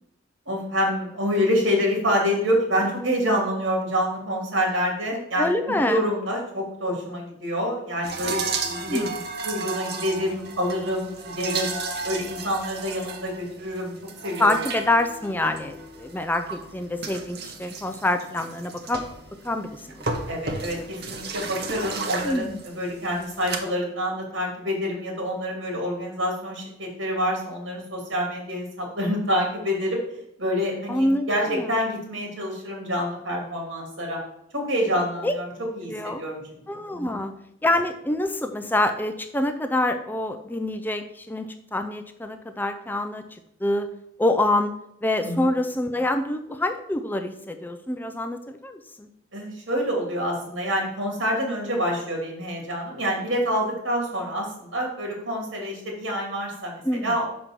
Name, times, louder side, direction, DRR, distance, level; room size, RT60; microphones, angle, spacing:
voice 1, 0.5-9.0 9.4-11.8 12.0-13.9 14.2-14.6 20.3-30.0 30.4-34.2 34.5-37.2 45.2-45.5 49.3-57.2, equal, 80° right, 0 dB, 2.7 m, -27 dB
voice 2, 5.4-6.0 8.6-9.1 14.4-19.0 19.4-20.0 22.2-22.6 30.9-31.9 35.2-35.3 35.9-36.2 36.7-37.3 37.6-43.2 43.6-43.9 44.2-44.7 45.0-49.1 56.9-57.1, left 1 dB, 10° left, 7 dB, 0.4 m, -26 dB
sound 1, 8.0-23.6, right 4 dB, 55° right, 0.9 m, -34 dB
5.9 x 5.2 x 6.0 m, 0.79 s
head